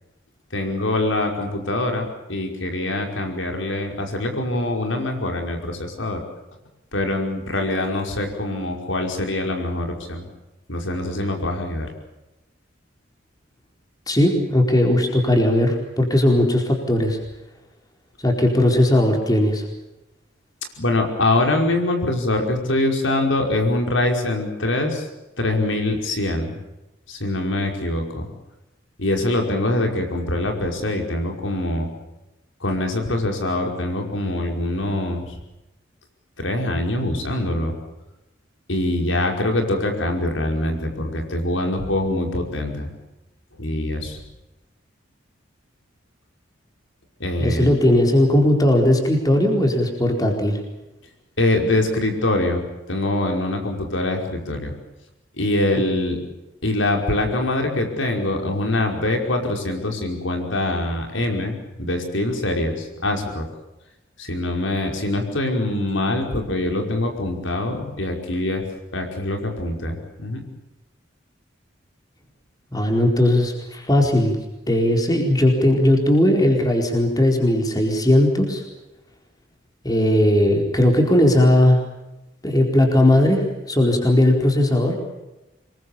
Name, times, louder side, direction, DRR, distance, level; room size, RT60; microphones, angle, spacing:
voice 1, 0.5-6.2 6.9-10.2 10.7-11.9 20.8-25.1 25.4-26.6 27.1-28.3 29.0-31.9 32.6-35.3 36.4-37.8 38.7-42.9 43.6-44.2 47.2-47.7 51.4-54.7 55.4-56.2 56.6-63.5 64.2-68.6 68.9-70.4, left 1 dB, 75° left, 3 dB, 5.3 m, -24 dB
voice 2, 14.1-17.2 18.2-19.6 47.4-50.6 72.7-74.4 74.7-78.6 79.8-81.8 82.4-85.0, left 1 dB, 20° left, 2 dB, 4.4 m, -18 dB
26.5 x 22.5 x 7.2 m, 0.97 s
head